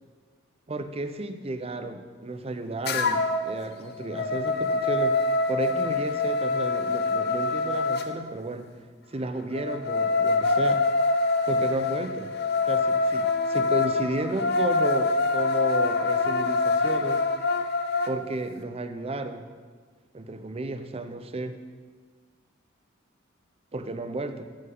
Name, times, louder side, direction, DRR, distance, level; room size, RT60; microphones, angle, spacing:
voice 1, 0.7-5.2 5.5-8.7 9.1-10.9 11.5-12.4 12.7-17.3 18.0-19.4 20.1-21.6 23.7-24.5, right 2 dB, 30° right, 9 dB, 0.5 m, -33 dB
sound 1, 2.8-3.5 3.9-8.1 9.5-18.1, left 3 dB, 50° left, 0.6 m, -25 dB
13.5 x 7.6 x 3.8 m, 1.5 s
head